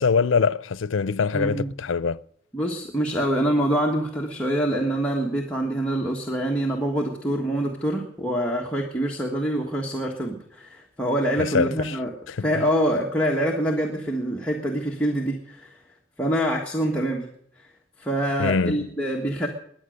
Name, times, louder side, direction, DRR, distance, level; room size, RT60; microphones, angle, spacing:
voice 1, 0.0-2.2 11.4-12.0 12.3-12.4 18.4-18.8, left 5 dB, 85° left, 0.5 m, -23 dB
voice 2, 1.3-1.7 2.5-12.1 12.4-15.8 16.2-17.3 18.0-19.5, right 1 dB, 5° left, 1.5 m, -25 dB
21.0 x 9.1 x 6.5 m
head